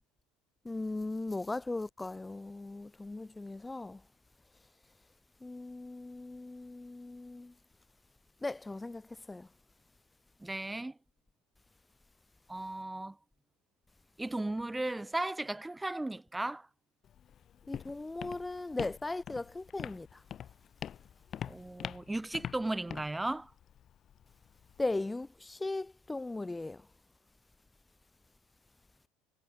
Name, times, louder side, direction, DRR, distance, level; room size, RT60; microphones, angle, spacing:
voice 1, 0.6-4.0 5.4-7.5 8.4-9.0 9.3-9.5 17.7-20.1 24.8-26.8, left 2 dB, 10° left, 0.6 m, -38 dB
voice 2, 10.4-10.9 12.5-13.1 14.2-16.6 21.5-23.5, right 2 dB, 5° right, 1.1 m, -35 dB
Walk footsteps, 17.0-25.0, left 9 dB, 35° left, 2.1 m, -45 dB
supercardioid pair, 125°, 0 cm